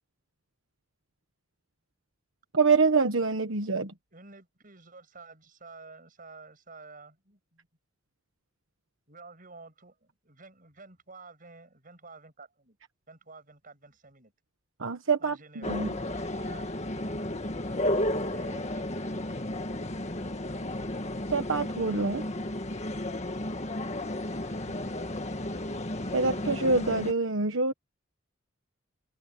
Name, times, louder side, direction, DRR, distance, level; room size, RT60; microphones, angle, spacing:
voice 1, 2.5-3.9 14.8-15.9 21.3-22.2 26.1-27.7, right 4 dB, 80° right, 1.3 m, -26 dB
voice 2, 4.1-7.7 9.1-12.8 13.1-14.3 15.2-19.5, right 3 dB, 45° right, 7.0 m, -51 dB
sound 1, 15.6-27.1, left 1 dB, 35° left, 1.8 m, -33 dB
head